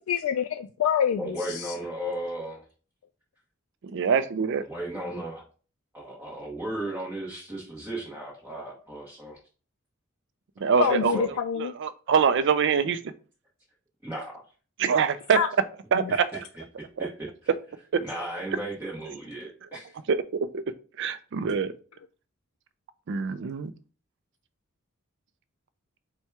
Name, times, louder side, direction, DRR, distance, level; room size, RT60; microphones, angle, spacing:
voice 1, 0.1-1.7 10.8-11.7 15.3-15.5, left 7 dB, 75° left, 7 dB, 0.3 m, -26 dB
voice 2, 1.2-2.6 4.7-5.4 5.9-9.4 10.8-11.4 14.0-14.4 16.1-16.2 16.8-17.3 18.0-20.0, right 1 dB, 10° right, -4 dB, 0.9 m, -35 dB
voice 3, 3.8-4.6 10.6-11.1 11.6-13.0 14.8-15.4 15.9-16.2 17.0-17.1 20.1-20.2 20.5-20.6 21.0-21.7 23.1-23.7, right 6 dB, 55° right, 12 dB, 0.4 m, -24 dB
4.3 x 2.2 x 4.5 m, 0.38 s
head